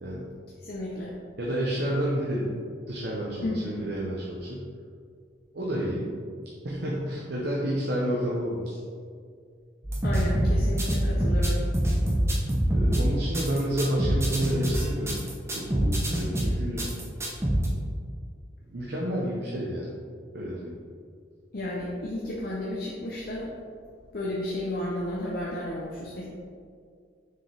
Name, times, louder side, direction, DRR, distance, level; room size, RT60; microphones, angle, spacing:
voice 1, 0.6-1.1 3.4-3.8 10.0-11.7 21.5-23.5 24.1-26.2, left 1 dB, 50° left, -4 dB, 0.7 m, -32 dB
voice 2, 1.4-2.5 2.9-4.6 5.5-6.1 6.6-8.8 12.7-15.2 15.5-16.9 18.7-19.9 20.3-20.7, equal, 55° right, -4 dB, 0.8 m, -30 dB
sound 1, 9.8-17.7, right 1 dB, 15° right, 0.8 m, -25 dB
6.2 x 4.9 x 3.4 m, 2.2 s
head